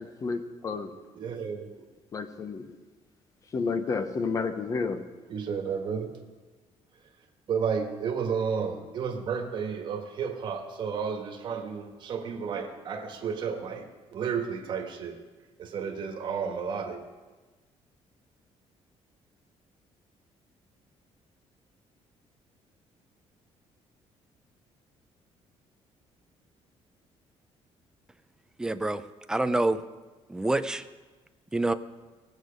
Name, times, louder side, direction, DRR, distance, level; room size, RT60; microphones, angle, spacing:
voice 1, 0.0-1.0 2.1-2.8 3.5-5.1, left 4 dB, 30° left, 9 dB, 0.8 m, -31 dB
voice 2, 1.1-1.9 5.3-6.1 7.5-15.2 15.6-17.0, right 6 dB, 45° right, 3 dB, 1.5 m, -32 dB
voice 3, 28.6-29.0 29.3-29.8 30.3-30.8 31.5-31.7, right 2 dB, 5° right, 11 dB, 0.4 m, -26 dB
18.5 x 8.0 x 5.1 m, 1.3 s
cardioid pair, 175°, 11 cm